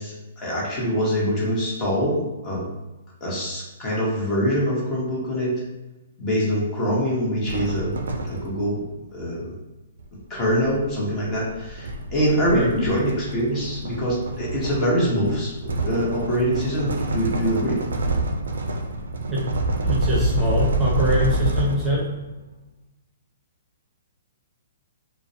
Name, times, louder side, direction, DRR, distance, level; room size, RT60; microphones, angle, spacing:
voice 1, 0.0-2.7 3.2-5.6 6.2-8.0 8.2-8.8 9.1-9.5 10.3-17.8, equal, 25° left, -5 dB, 0.8 m, -24 dB
sound 1, 7.5-8.8 10.0-22.2, right 1 dB, 80° right, 0.3 m, -27 dB
voice 2, 19.8-22.0, equal, 15° right, -6 dB, 0.8 m, -23 dB
2.4 x 2.0 x 2.6 m, 1.0 s
hypercardioid pair, 140°, 0 cm